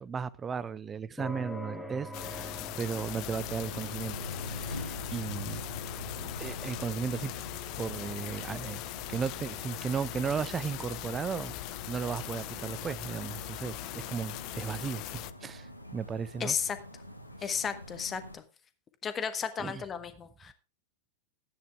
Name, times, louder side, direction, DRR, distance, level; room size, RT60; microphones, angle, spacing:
voice 1, 0.0-4.2 4.5-5.6 6.2-7.3 7.8-8.8 9.1-11.5 11.9-16.6 17.4-17.5 19.6-19.8, right 6 dB, 20° right, 0.6 m, -35 dB
sound 1, 1.2-17.7, right 1 dB, 5° left, 2.5 m, -49 dB
sound 2, 2.1-15.3, left 18 dB, 40° left, 0.6 m, -40 dB
sound 3, 3.3-18.4, left 1 dB, 90° left, 1.6 m, -44 dB
voice 2, 16.4-16.8 17.4-18.4 19.0-20.5, left 7 dB, 20° left, 1.5 m, -33 dB
14.5 x 9.6 x 3.5 m
figure-of-eight pair, 90°, 0 cm